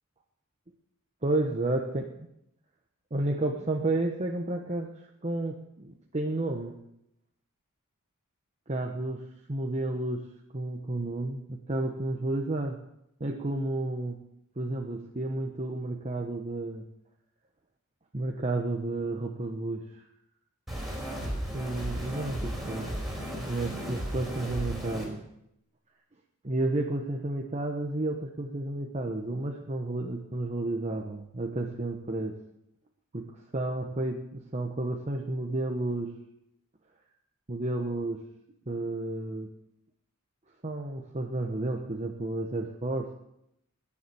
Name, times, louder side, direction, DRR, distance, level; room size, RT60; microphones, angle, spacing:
voice 1, 1.2-2.0 3.1-4.9 5.2-6.8 8.7-9.2 9.5-10.3 10.5-12.8 13.2-14.2 14.6-16.8 18.1-20.0 21.5-22.9 23.4-25.2 26.4-32.3 33.1-36.1 37.5-38.2 38.7-39.5 40.6-43.1, right 2 dB, 30° right, 1 dB, 1.1 m, -31 dB
sound 1, 20.7-25.1, equal, ahead, 4.7 m, -35 dB
20.5 x 7.2 x 7.0 m, 0.81 s
head